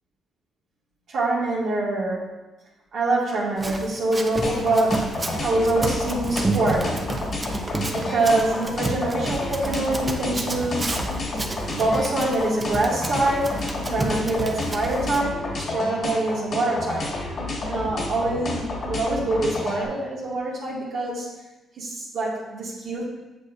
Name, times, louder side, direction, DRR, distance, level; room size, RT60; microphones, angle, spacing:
voice 1, 1.1-2.3 2.9-5.1 5.4-7.1 7.9-11.0 11.7-13.6 13.9-17.1 17.6-21.3 21.8-23.1, right 2 dB, 70° right, -7 dB, 2.0 m, -25 dB
Run, 3.6-15.2, right 2 dB, 20° right, 0.8 m, -31 dB
sound 1, 4.4-19.9, left 2 dB, 55° left, 1.7 m, -30 dB
8.1 x 6.3 x 2.6 m, 1.1 s
cardioid pair, 90°, 0 cm